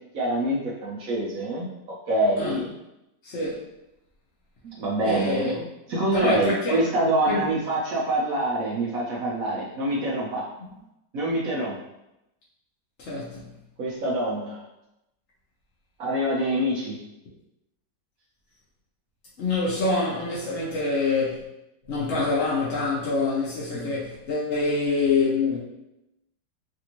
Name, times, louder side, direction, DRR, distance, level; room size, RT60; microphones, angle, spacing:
voice 1, 0.1-1.7 2.1-2.7 4.6-10.4 11.1-11.7 13.8-14.6 16.0-17.0 23.7-24.0, right 1 dB, 65° right, -5 dB, 1.0 m, -26 dB
voice 2, 3.2-3.6 5.0-5.5 6.1-6.8 7.3-7.4 13.0-13.5 19.4-21.4 21.9-25.6, left 3 dB, 55° left, -7 dB, 0.8 m, -25 dB
3.4 x 2.5 x 2.9 m, 0.88 s
omnidirectional pair, 1.9 m